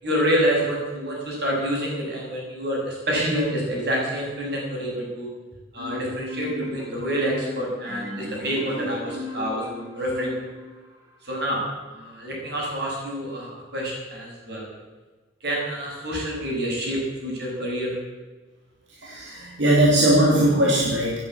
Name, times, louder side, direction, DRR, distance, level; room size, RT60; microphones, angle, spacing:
voice 1, 0.0-5.3 5.7-10.3 11.2-11.6 11.9-14.7 15.4-18.0, equal, 60° right, -2 dB, 6.6 m, -27 dB
Marimba xylophone, 5.8-10.9, left 2 dB, 20° right, 5.2 m, -35 dB
voice 2, 19.0-21.2, right 1 dB, 75° right, -3 dB, 2.9 m, -19 dB
17.0 x 9.4 x 8.6 m, 1.3 s
head